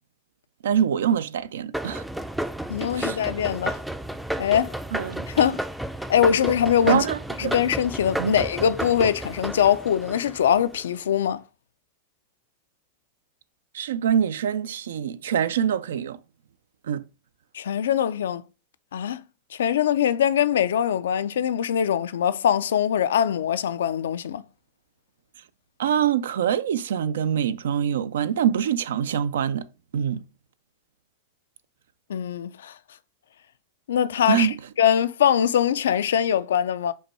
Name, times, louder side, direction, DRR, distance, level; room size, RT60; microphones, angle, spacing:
voice 1, 0.6-2.0 2.9-3.2 4.9-5.2 6.8-7.5 8.2-8.3 13.7-16.2 16.9-17.0 25.8-29.7 29.9-30.2 34.3-34.6, right 9 dB, 85° right, 0.4 m, -24 dB
sound 1, 1.7-10.8, right 1 dB, 5° right, 0.3 m, -32 dB
voice 2, 2.7-3.8 4.4-4.7 5.3-5.6 6.1-7.0 7.4-11.4 17.5-18.4 18.9-19.2 19.5-24.4 32.1-32.7 33.9-36.9, left 9 dB, 90° left, 0.3 m, -22 dB
5.3 x 2.3 x 4.2 m
hypercardioid pair, 125°, 0 cm